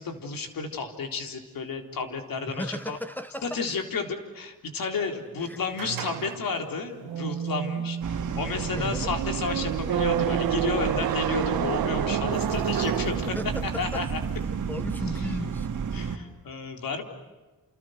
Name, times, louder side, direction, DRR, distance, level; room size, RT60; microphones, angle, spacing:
voice 1, 0.0-3.0 3.4-13.4 13.6-14.2 15.2-15.4 15.9-17.0, left 4 dB, 70° left, 3.9 m, -32 dB
voice 2, 2.5-3.6 5.5-5.6 8.7-9.1 13.3-14.1 14.7-15.7, left 1 dB, 5° left, 1.0 m, -35 dB
sound 1, 5.8-13.8, right 10 dB, 80° right, 1.3 m, -30 dB
sound 2, 8.0-16.2, right 6 dB, 60° right, 2.3 m, -32 dB
30.0 x 29.0 x 6.6 m
wide cardioid pair, 135°, 35 cm